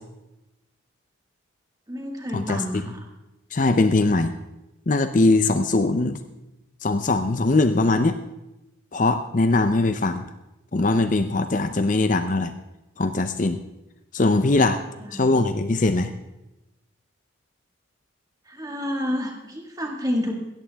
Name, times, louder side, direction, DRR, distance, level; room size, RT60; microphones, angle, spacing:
voice 1, 1.9-3.1 15.0-15.3 18.4-20.4, equal, 20° right, 1 dB, 1.9 m, -29 dB
voice 2, 3.5-4.3 4.9-6.2 6.8-8.2 8.9-10.3 10.7-12.5 13.0-13.6 14.1-14.8 15.1-16.1, left 2 dB, 40° left, 9 dB, 0.6 m, -21 dB
18.0 x 13.5 x 3.5 m, 0.96 s
head